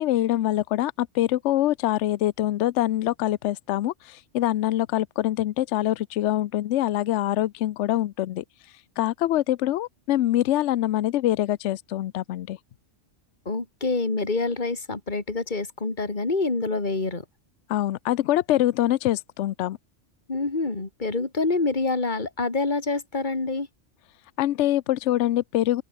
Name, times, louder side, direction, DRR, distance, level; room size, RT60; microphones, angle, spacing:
voice 1, 0.0-8.4 9.0-12.6 17.7-19.8 24.4-25.8, left 14 dB, 70° left, 0.9 m, -24 dB
voice 2, 13.5-17.2 20.3-23.7, left 3 dB, 40° left, 2.7 m, -26 dB
open air
omnidirectional pair, 1.3 m